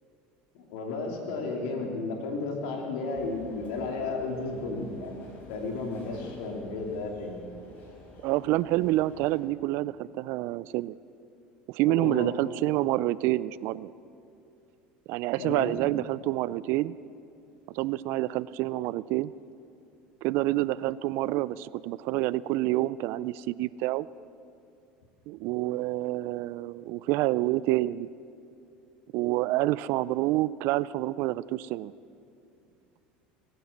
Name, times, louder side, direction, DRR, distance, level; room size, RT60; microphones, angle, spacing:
voice 1, 0.5-7.4 12.0-12.3 15.4-15.8, left 3 dB, 75° left, 1 dB, 2.9 m, -33 dB
sound 1, 3.1-9.4, left 2 dB, 45° left, 4.4 m, -50 dB
voice 2, 8.2-11.0 11.7-13.9 15.1-16.9 17.7-19.3 20.2-24.1 25.3-28.1 29.1-31.9, right 17 dB, 65° right, 19 dB, 0.4 m, -28 dB
19.0 x 9.3 x 7.3 m, 2.5 s
supercardioid pair, 95°, 4 cm